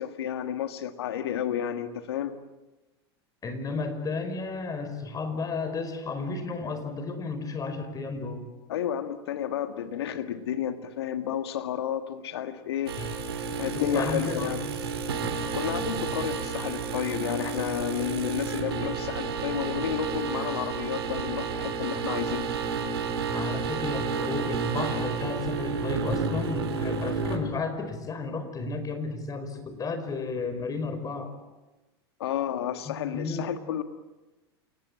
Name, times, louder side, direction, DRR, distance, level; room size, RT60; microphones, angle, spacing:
voice 1, 0.0-2.4 8.7-12.9 13.6-14.6 15.5-22.5 32.2-33.8, left 9 dB, 75° left, 1.9 m, -31 dB
voice 2, 3.4-8.5 13.0-13.1 13.7-14.5 23.3-31.3 32.8-33.5, left 3 dB, 25° left, 5.1 m, -33 dB
sound 1, 12.9-27.4, right 5 dB, 80° right, 4.3 m, -31 dB
28.5 x 19.0 x 8.8 m
hypercardioid pair, 95°, 13 cm